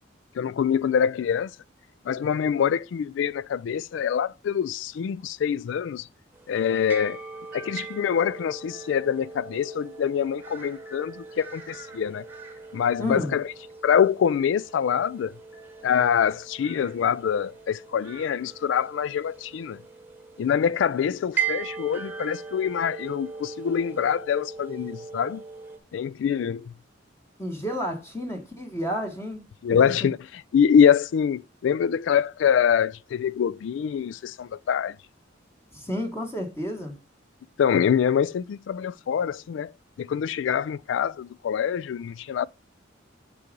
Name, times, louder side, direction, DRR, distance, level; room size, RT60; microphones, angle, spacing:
voice 1, 0.4-1.5 2.1-6.1 6.5-7.2 7.5-12.3 12.7-13.5 13.8-15.3 15.8-19.8 20.4-25.4 25.9-26.7 29.6-30.2 30.5-35.0 37.6-39.7 40.0-42.5, left 8 dB, 75° left, 0.3 m, -25 dB
sound 1, 6.3-25.8, right 6 dB, 10° right, 1.1 m, -39 dB
voice 2, 13.0-13.3 27.4-29.4 29.7-30.1 35.7-36.9, equal, 15° left, 1.2 m, -31 dB
6.8 x 4.8 x 5.1 m
head